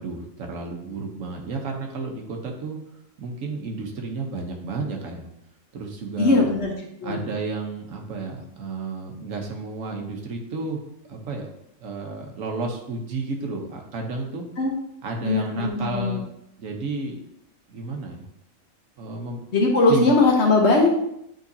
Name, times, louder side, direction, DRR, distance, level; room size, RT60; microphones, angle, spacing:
voice 1, 0.0-2.8 3.2-5.2 5.7-6.5 7.0-10.8 11.1-11.5 11.8-14.5 15.0-16.2 16.6-17.2 17.7-18.2 19.0-19.4 19.9-20.1, right 3 dB, 85° right, 1 dB, 1.4 m, -32 dB
voice 2, 6.2-6.7 7.0-7.2 14.6-14.7 15.2-16.2 19.5-20.9, left 3 dB, 60° left, 0 dB, 1.2 m, -19 dB
9.1 x 3.8 x 2.8 m, 0.79 s
omnidirectional pair, 1.3 m